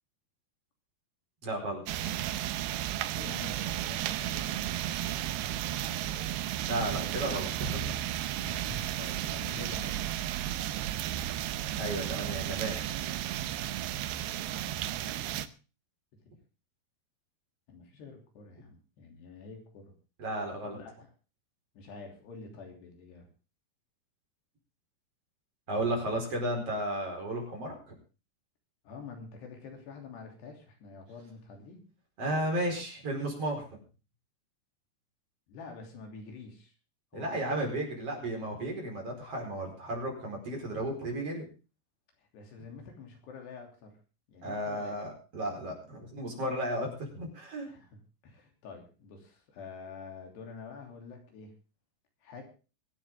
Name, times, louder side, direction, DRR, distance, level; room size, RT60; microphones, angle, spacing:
voice 1, 1.4-2.1 6.7-8.3 11.8-12.8 20.2-20.8 25.7-28.0 32.2-33.8 37.1-41.5 44.4-47.7, right 1 dB, 35° right, 0 dB, 5.5 m, -34 dB
sound 1, 1.9-15.5, right 12 dB, 80° right, 2.6 m, -33 dB
voice 2, 3.1-5.3 5.7-6.3 8.4-10.0 14.0-15.5 16.1-16.2 17.7-19.9 20.6-21.1 21.8-23.3 25.7-26.2 28.9-31.9 35.5-36.7 37.1-37.7 42.2-44.0 44.3-45.0 47.6-51.6 52.2-52.4, left 4 dB, 80° left, 3 dB, 5.2 m, -48 dB
24.0 x 9.1 x 3.7 m, 0.35 s
omnidirectional pair, 4.7 m